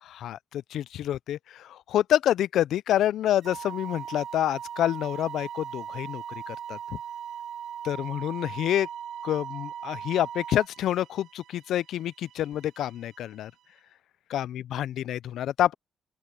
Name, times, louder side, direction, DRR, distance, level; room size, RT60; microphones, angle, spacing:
voice 1, 0.0-6.8 7.8-8.9 9.2-13.5 14.3-15.7, left 12 dB, 85° left, 0.3 m, -28 dB
sound 1, 3.1-13.9, right 12 dB, 90° right, 6.1 m, -58 dB
sound 2, 3.4-10.7, right 9 dB, 75° right, 1.3 m, -38 dB
open air
cardioid pair, 125°, 0 cm